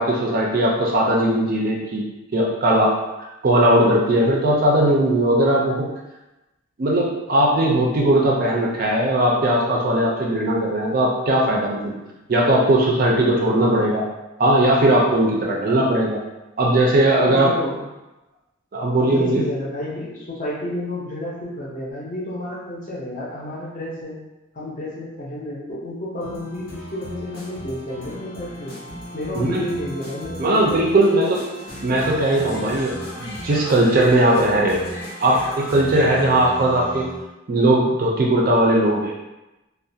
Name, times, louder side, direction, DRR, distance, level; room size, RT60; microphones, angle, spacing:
voice 1, 0.0-2.0 2.3-2.9 3.4-5.9 6.8-11.9 12.3-14.1 14.4-16.2 16.6-17.5 18.7-19.5 29.3-29.6 30.4-31.4 31.8-34.8 35.2-37.1 37.5-39.1, right 1 dB, 40° right, -2 dB, 0.4 m, -18 dB
voice 2, 17.3-17.8 19.0-24.2 24.5-28.7 29.1-31.3, left 1 dB, 35° left, -5 dB, 0.6 m, -30 dB
sound 1, 26.2-37.3, equal, 85° left, 0.7 m, -36 dB
2.3 x 2.1 x 2.6 m, 1.0 s
head